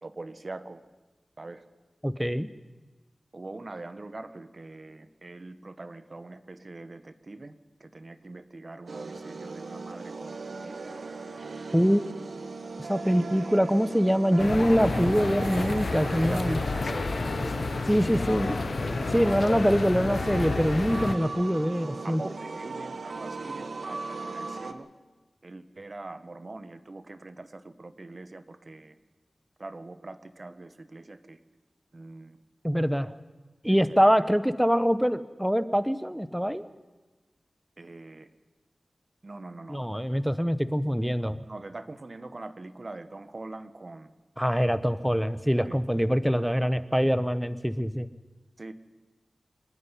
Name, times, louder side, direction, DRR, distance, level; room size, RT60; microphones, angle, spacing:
voice 1, 0.0-0.8 1.4-1.7 3.3-7.5 7.8-11.0 13.0-13.3 14.9-15.1 16.2-18.3 19.3-19.7 22.0-24.9 25.4-29.0 29.6-31.4 31.9-32.4 33.7-34.3 37.8-38.3 39.2-39.8 41.4-44.1 45.6-45.8 48.6-48.7, right 2 dB, 50° right, 11 dB, 1.4 m, -43 dB
voice 2, 2.0-2.5 11.7-12.0 12.8-16.6 17.9-18.6 19.1-22.2 32.6-33.1 33.6-36.6 39.7-41.4 44.4-48.1, equal, 5° right, 14 dB, 0.9 m, -24 dB
sound 1, 8.9-24.7, right 3 dB, 75° right, 1.3 m, -38 dB
sound 2, 14.4-21.2, left 3 dB, 70° left, 0.8 m, -30 dB
27.0 x 9.7 x 10.0 m, 1.2 s
wide cardioid pair, 50°, 0 cm